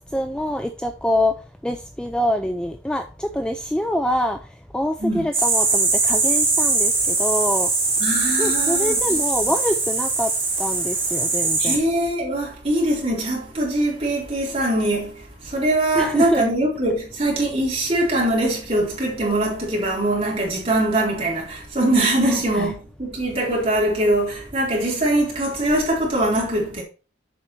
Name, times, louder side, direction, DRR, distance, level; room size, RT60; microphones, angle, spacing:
voice 1, 0.1-1.3 1.6-4.4 4.7-7.7 8.4-10.3 10.6-11.8 15.9-16.4 22.2-22.7, left 1 dB, 5° left, 0.4 m, -25 dB
sound 1, 5.3-11.8, right 3 dB, 15° right, 3.4 m, -21 dB
voice 2, 8.0-9.2 11.6-26.8, right 1 dB, 30° right, 3.7 m, -22 dB
7.7 x 5.6 x 4.5 m
head